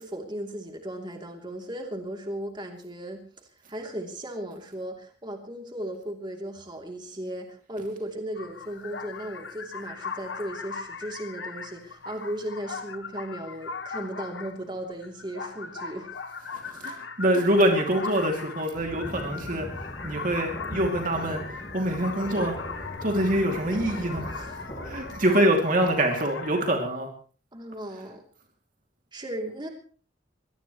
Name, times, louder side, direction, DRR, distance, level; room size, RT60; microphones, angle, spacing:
voice 1, 0.0-3.2 3.7-16.2 16.8-17.0 24.3-24.6 25.3-25.4 27.5-28.2 29.1-29.7, right 1 dB, 25° right, 2 dB, 3.0 m, -36 dB
sound 1, 8.3-26.7, left 5 dB, 75° left, 1.5 m, -39 dB
voice 2, 16.8-19.7 20.0-21.4 21.7-22.6 23.0-24.3 24.8-27.1, right 1 dB, 45° right, 2 dB, 2.7 m, -24 dB
sound 2, 18.7-25.1, equal, 25° left, 6.0 m, -39 dB
23.5 x 18.5 x 3.1 m, 0.41 s
head